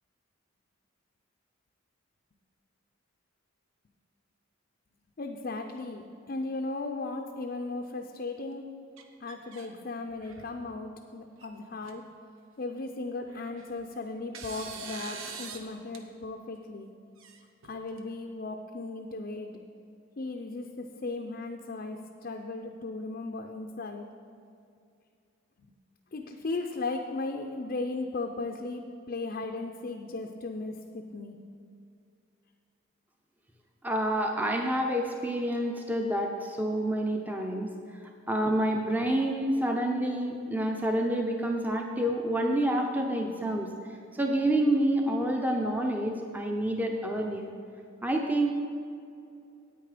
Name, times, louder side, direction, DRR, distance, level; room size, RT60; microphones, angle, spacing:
voice 1, 5.2-6.0 6.3-8.6 9.2-12.0 12.6-16.9 17.6-19.6 20.2-24.1 26.1-31.4, left 3 dB, 45° left, 3 dB, 0.5 m, -36 dB
sound 1, 9.0-9.7 10.1-10.6 11.4-11.5 11.8-11.9 13.3-13.8 14.3-15.6 15.9-16.0 17.2-18.0, right 5 dB, 70° right, 0.9 m, -43 dB
voice 2, 33.8-37.7 38.3-43.7 44.1-47.5 48.0-48.5, right 1 dB, 10° right, 2 dB, 0.6 m, -28 dB
9.3 x 8.8 x 5.0 m, 2.5 s
head